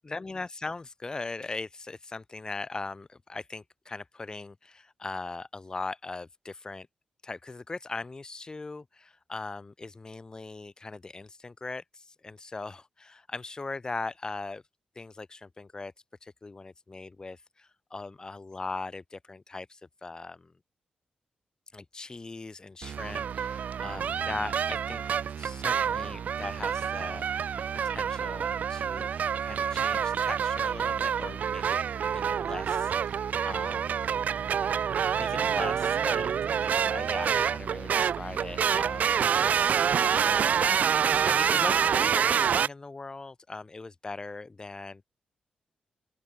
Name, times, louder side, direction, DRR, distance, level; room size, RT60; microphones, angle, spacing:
voice 1, 0.0-6.9 7.2-14.6 15.0-15.9 16.2-20.5 21.7-25.0 25.4-27.3 27.7-29.1 29.4-34.1 35.1-45.0, left 3 dB, 25° left, 4.1 m, -40 dB
sound 1, 22.8-42.7, right 8 dB, 70° right, 2.3 m, -27 dB
open air
cardioid pair, 100°, 3 cm